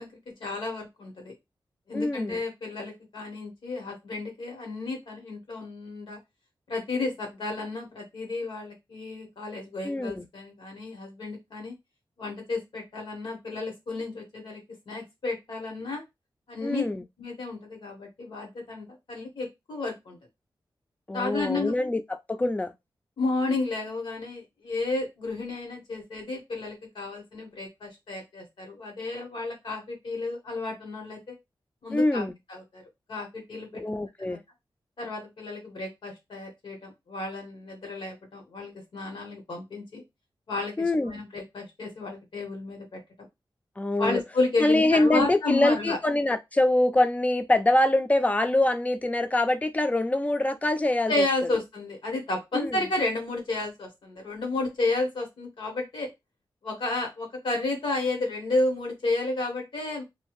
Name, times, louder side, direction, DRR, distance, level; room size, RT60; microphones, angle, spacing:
voice 1, 0.0-1.3 1.9-6.2 6.7-11.7 12.2-16.0 16.5-16.8 17.2-20.2 21.1-21.7 22.4-22.5 23.2-31.3 31.8-32.8 33.1-33.8 34.3-34.4 35.0-40.0 40.5-43.0 44.0-46.0 51.1-56.1 56.6-60.0, left 2 dB, 80° left, 1.4 m, -32 dB
voice 2, 1.9-2.4 9.8-10.2 16.6-17.0 21.1-22.0 22.3-22.7 31.9-32.3 33.7-34.4 40.8-41.1 43.8-44.2 44.6-51.3 52.5-52.8, left 1 dB, 15° left, 0.3 m, -24 dB
2.6 x 2.4 x 3.0 m
wide cardioid pair, 160°, 8 cm